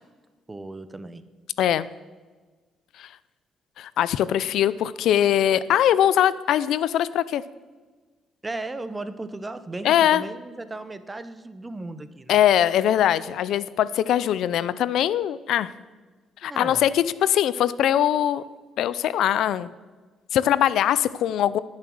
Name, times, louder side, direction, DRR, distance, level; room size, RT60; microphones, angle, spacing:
voice 1, 0.5-1.2 8.4-12.4 16.4-16.9, right 2 dB, 15° right, 12 dB, 0.8 m, -36 dB
voice 2, 3.8-7.4 9.8-10.2 12.3-15.7 16.4-18.4 18.8-19.7 20.3-21.6, left 11 dB, 70° left, 17 dB, 0.5 m, -21 dB
19.0 x 7.4 x 6.2 m, 1.3 s
cardioid pair, 135°, 0 cm